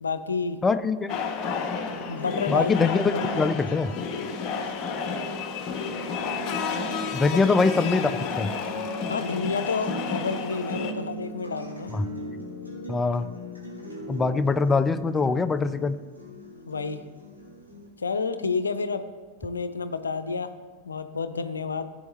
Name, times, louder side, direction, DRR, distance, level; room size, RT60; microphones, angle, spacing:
voice 1, 0.0-0.6 2.1-2.7 3.1-3.4 7.3-7.4 9.1-11.9 16.7-17.0 18.0-19.1 19.4-20.5 20.8-21.8, left 5 dB, 75° left, 12 dB, 0.6 m, -29 dB
voice 2, 0.6-1.1 2.5-4.0 7.1-8.5 11.9-12.1 12.9-13.3 14.1-16.0, left 4 dB, 15° left, 13 dB, 0.5 m, -23 dB
sound 1, 1.1-10.9, left 5 dB, 35° left, 1.0 m, -31 dB
sound 2, 1.9-17.9, right 1 dB, 90° right, 2.9 m, -40 dB
15.5 x 7.9 x 3.2 m, 1.4 s
figure-of-eight pair, 90°, 0 cm